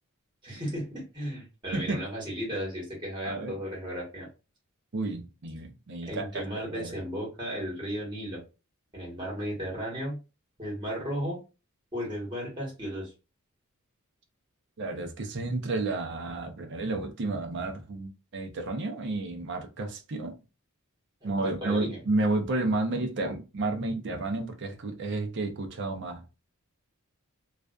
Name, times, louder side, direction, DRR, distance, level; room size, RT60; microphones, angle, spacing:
voice 1, 0.4-4.3 6.0-8.4 8.9-10.2 10.6-11.4 11.9-13.1 21.2-22.0, equal, 20° right, 1.2 m, -35 dB
voice 2, 3.2-3.6 4.9-7.0 14.8-20.4 21.2-26.2, right 2 dB, 55° right, 0.5 m, -31 dB
2.4 x 2.2 x 2.3 m
head